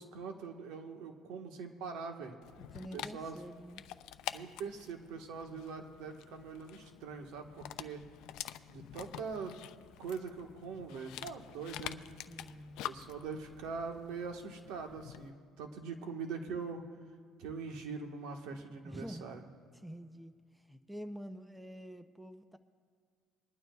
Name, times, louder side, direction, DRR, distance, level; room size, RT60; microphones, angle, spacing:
voice 1, 0.0-2.4 2.9-3.4 4.3-8.1 8.7-9.6 10.0-12.2 12.8-16.8 17.4-19.4, right 5 dB, 85° right, 4 dB, 1.3 m, -42 dB
Dog, 2.4-15.3, left 13 dB, 80° left, 0.4 m, -47 dB
voice 2, 2.7-3.8 12.3-12.8 18.8-19.5 19.8-22.6, equal, 5° right, 10 dB, 0.5 m, -47 dB
21.5 x 11.5 x 2.3 m, 2.1 s
cardioid pair, 125°, 0 cm